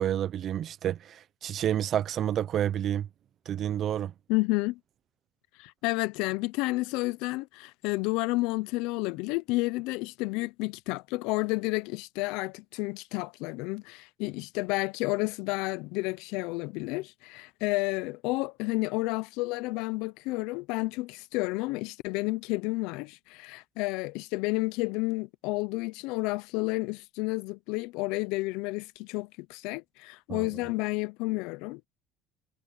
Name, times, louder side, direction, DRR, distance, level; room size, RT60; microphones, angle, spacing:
voice 1, 0.0-3.1 3.5-4.1 30.3-30.5, right 10 dB, 40° right, 0.6 m, -29 dB
voice 2, 4.3-4.8 5.6-31.9, left 23 dB, 80° left, 0.4 m, -31 dB
cardioid pair, 140°, 0 cm